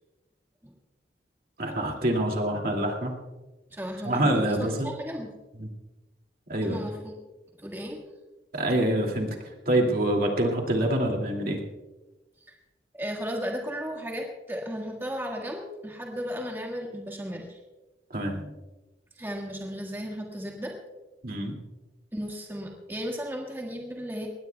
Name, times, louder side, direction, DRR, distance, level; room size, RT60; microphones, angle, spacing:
voice 1, 1.6-3.1 4.0-4.9 5.6-5.7 6.5-6.9 8.5-9.4 9.7-11.6 18.1-18.5 21.2-21.5, right 1 dB, 55° right, 1 dB, 2.3 m, -26 dB
voice 2, 3.7-5.3 6.6-7.1 7.6-8.0 12.5-12.6 12.9-17.6 19.2-20.8 22.1-24.3, equal, 15° right, 0 dB, 1.6 m, -35 dB
22.0 x 19.0 x 2.3 m, 1.1 s
head